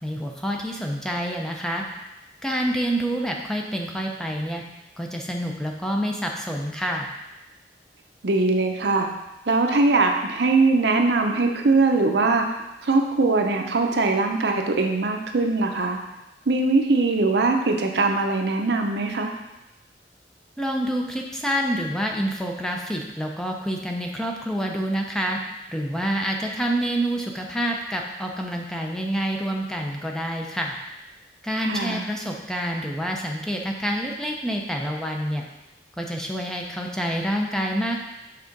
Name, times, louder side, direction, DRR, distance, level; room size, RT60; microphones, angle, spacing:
voice 1, 0.0-1.8 2.4-4.6 5.0-7.1 20.6-25.4 25.7-30.7 31.4-35.4 36.0-38.0, equal, 5° left, 0 dB, 0.5 m, -27 dB
voice 2, 8.2-9.1 9.5-12.5 12.8-16.0 16.5-19.3 31.6-32.1, right 3 dB, 70° right, 3 dB, 0.7 m, -21 dB
5.8 x 3.7 x 5.2 m, 0.97 s
head